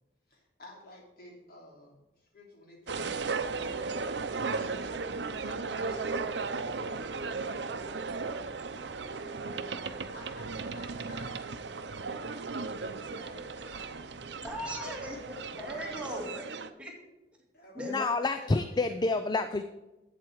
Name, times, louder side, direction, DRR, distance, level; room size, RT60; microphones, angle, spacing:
voice 1, 0.3-4.1 4.5-5.1 5.4-7.3 7.5-7.9 9.1-9.5 10.1-11.5 11.9-14.2 14.8-15.0 15.7-16.1 17.5-18.0 18.4-19.4, left 1 dB, 55° left, -1 dB, 3.2 m, -52 dB
sound 1, 2.9-16.7, right 4 dB, 75° right, 0.7 m, -36 dB
voice 2, 14.4-16.4 16.8-16.9 17.7-18.0, equal, 5° right, -1 dB, 2.2 m, -38 dB
voice 3, 17.8-19.6, left 3 dB, 25° left, 9 dB, 0.4 m, -28 dB
11.5 x 8.3 x 4.7 m, 1.0 s
head